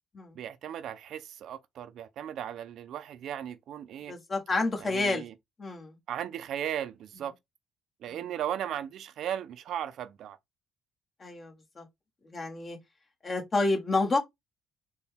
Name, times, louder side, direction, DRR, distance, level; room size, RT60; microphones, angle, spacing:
voice 1, 0.3-4.1 4.8-5.3 6.1-7.3 8.0-10.4, right 10 dB, 65° right, 0.4 m, -36 dB
voice 2, 4.1-5.2 5.6-6.0 8.1-8.2 11.2-11.8 12.3-12.8 13.2-14.2, left 3 dB, 35° left, 1.4 m, -29 dB
4.0 x 2.2 x 3.4 m
cardioid pair, 85°, 0 cm